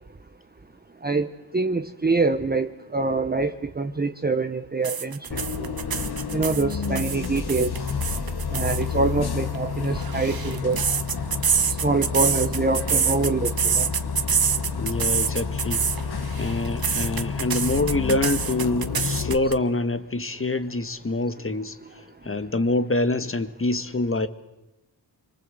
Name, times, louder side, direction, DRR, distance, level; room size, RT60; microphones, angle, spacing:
voice 1, 1.0-5.7 6.3-7.7 8.5-10.8 11.8-13.9, right 3 dB, 20° right, 7 dB, 1.3 m, -25 dB
sound 1, 4.8-8.8 9.8-16.0 16.3-19.5, right 7 dB, 55° right, 1.6 m, -26 dB
Bus, 5.3-19.3, left 5 dB, 60° left, 2.6 m, -30 dB
voice 2, 14.8-21.8 22.2-24.3, left 2 dB, 30° left, 10 dB, 2.0 m, -26 dB
28.0 x 24.5 x 7.9 m, 0.98 s
cardioid pair, 80°, 43 cm